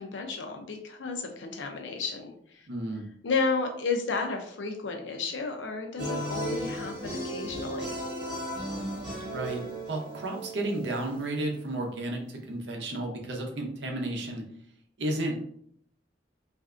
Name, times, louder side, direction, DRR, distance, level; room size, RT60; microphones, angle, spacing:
voice 1, 0.0-2.7 3.2-8.0, left 4 dB, 85° left, 4 dB, 0.6 m, -32 dB
voice 2, 2.7-3.0 9.3-14.4 15.0-15.4, right 1 dB, 70° right, 1 dB, 0.7 m, -32 dB
sound 1, 6.0-11.3, equal, 25° right, 1.1 m, -35 dB
3.2 x 2.6 x 2.5 m, 0.66 s
head